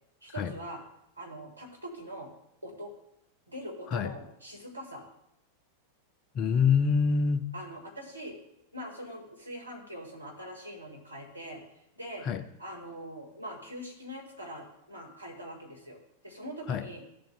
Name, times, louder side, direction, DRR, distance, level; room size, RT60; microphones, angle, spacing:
voice 1, 0.2-0.8 1.2-2.3 2.6-2.9 3.5-5.0 7.5-8.4 8.7-11.6 12.0-12.3 12.6-17.0, equal, 85° right, -1 dB, 1.7 m, -43 dB
voice 2, 6.3-7.5 12.2-12.4 16.7-16.9, left 6 dB, 35° left, 10 dB, 0.5 m, -26 dB
14.0 x 7.6 x 2.2 m, 0.79 s
figure-of-eight pair, 90°, 0 cm